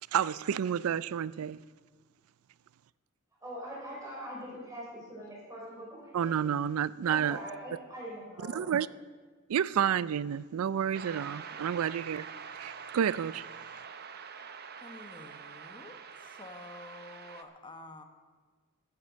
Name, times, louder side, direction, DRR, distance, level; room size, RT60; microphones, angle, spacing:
voice 1, 0.1-1.6 6.1-7.4 8.5-8.9 9.5-12.3 12.6-13.4, right 8 dB, 85° right, 0.4 m, -30 dB
voice 2, 3.4-6.3 7.0-8.8, equal, 15° right, 5.2 m, -43 dB
sound 1, 10.9-17.4, right 6 dB, 50° right, 0.7 m, -45 dB
voice 3, 14.8-18.0, left 2 dB, 20° left, 1.1 m, -49 dB
14.0 x 9.6 x 6.3 m
head